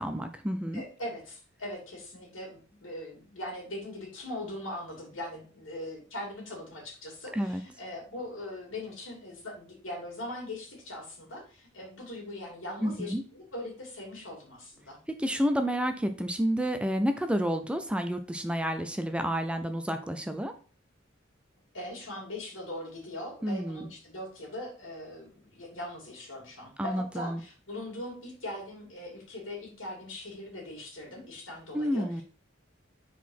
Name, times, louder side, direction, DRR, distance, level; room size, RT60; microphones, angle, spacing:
voice 1, 0.0-0.8 7.3-7.6 12.8-13.2 15.2-20.5 23.4-23.9 26.8-27.4 31.7-32.2, equal, 5° right, 7 dB, 0.4 m, -30 dB
voice 2, 0.7-15.0 21.7-32.2, left 1 dB, 85° left, -1 dB, 2.8 m, -40 dB
4.7 x 4.1 x 5.4 m, 0.40 s
head